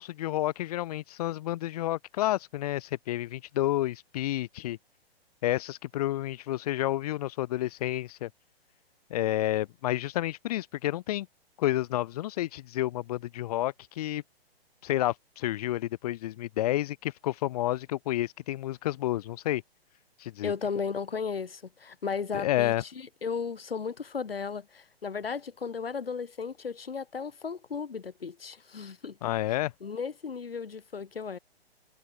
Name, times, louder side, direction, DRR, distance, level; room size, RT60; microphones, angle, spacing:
voice 1, 0.0-4.8 5.4-8.3 9.1-11.3 11.6-14.2 14.8-19.6 20.2-20.5 22.3-22.8 29.2-29.7, left 14 dB, 40° left, 1.3 m, -30 dB
voice 2, 20.4-29.2 29.8-31.4, left 5 dB, 65° left, 6.9 m, -35 dB
figure-of-eight pair, 120°, 31 cm